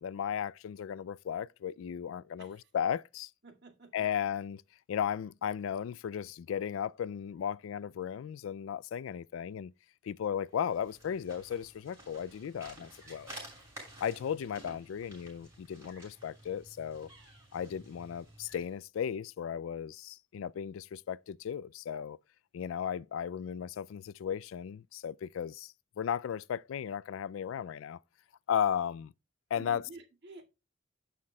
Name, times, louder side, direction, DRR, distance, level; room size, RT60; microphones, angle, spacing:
voice 1, 0.0-3.3 3.9-4.6 4.9-9.7 10.0-13.3 14.0-17.1 17.5-22.2 22.5-28.0 28.5-29.1 29.5-29.8, left 8 dB, 85° left, 0.3 m, -35 dB
voice 2, 2.4-2.7 3.4-4.1 29.6-30.4, right 3 dB, 60° right, 2.0 m, -51 dB
sound 1, 10.5-18.8, right 1 dB, 15° right, 6.3 m, -52 dB
17.0 x 5.7 x 2.2 m
head